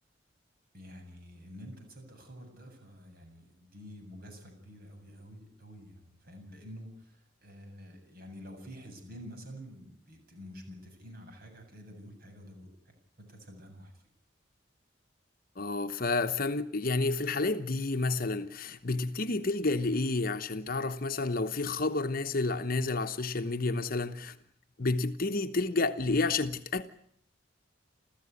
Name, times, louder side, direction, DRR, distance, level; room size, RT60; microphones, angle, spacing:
voice 1, 0.7-13.9, equal, 50° right, 7.5 m, -49 dB
voice 2, 15.6-24.4 24.8-26.8, left 3 dB, 50° left, 1.0 m, -30 dB
29.5 x 14.5 x 9.7 m
head